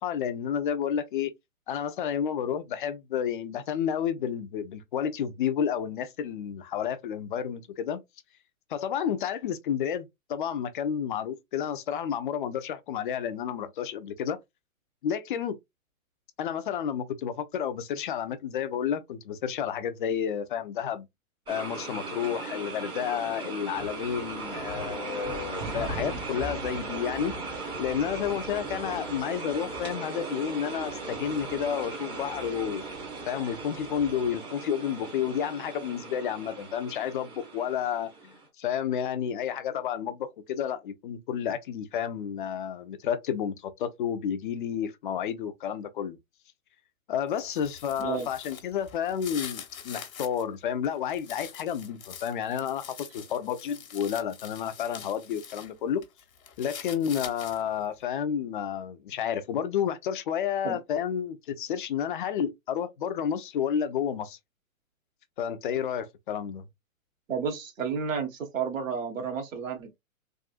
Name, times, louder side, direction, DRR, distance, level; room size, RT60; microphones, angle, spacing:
voice 1, 0.0-1.3 1.7-8.0 8.7-14.4 15.0-15.6 16.4-21.1 21.5-27.3 27.8-32.8 33.3-46.2 47.1-56.0 56.6-64.4 65.4-66.6, left 8 dB, 40° left, 0.5 m, -31 dB
sound 1, 21.5-38.5, right 3 dB, 10° right, 0.6 m, -38 dB
sound 2, 23.7-34.4, equal, 35° right, 1.0 m, -44 dB
sound 3, 47.3-50.4 50.8-55.7 56.0-57.8, left 8 dB, 70° left, 1.0 m, -44 dB
voice 2, 67.3-70.0, right 6 dB, 65° right, 1.2 m, -31 dB
3.6 x 2.3 x 2.4 m
hypercardioid pair, 125°, 42 cm